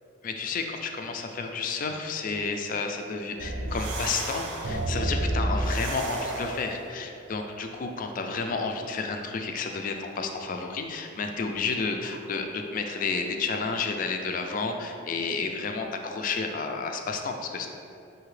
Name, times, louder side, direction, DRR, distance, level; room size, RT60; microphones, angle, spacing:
voice 1, 0.2-17.7, left 4 dB, 45° left, 4 dB, 0.3 m, -31 dB
sound 1, 3.4-6.9, right 1 dB, 75° right, 0.6 m, -30 dB
5.7 x 2.7 x 3.1 m, 2.6 s
head